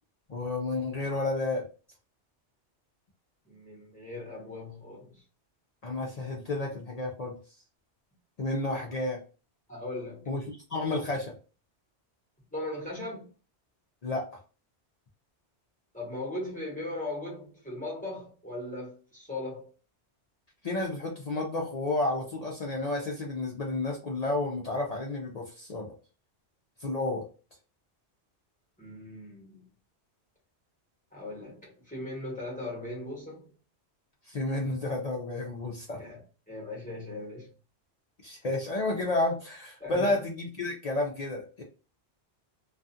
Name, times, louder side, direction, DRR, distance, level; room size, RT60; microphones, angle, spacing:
voice 1, 0.3-1.7 5.8-7.4 8.4-9.2 10.3-11.3 14.0-14.3 20.6-25.9 26.8-27.3 34.3-36.0 38.2-41.6, left 2 dB, 55° left, 0.4 m, -31 dB
voice 2, 3.4-5.2 9.7-10.3 12.5-13.3 15.9-19.7 28.8-29.7 31.1-33.5 35.9-37.5 39.8-40.2, left 2 dB, 5° left, 1.0 m, -38 dB
2.4 x 2.3 x 2.6 m
omnidirectional pair, 1.2 m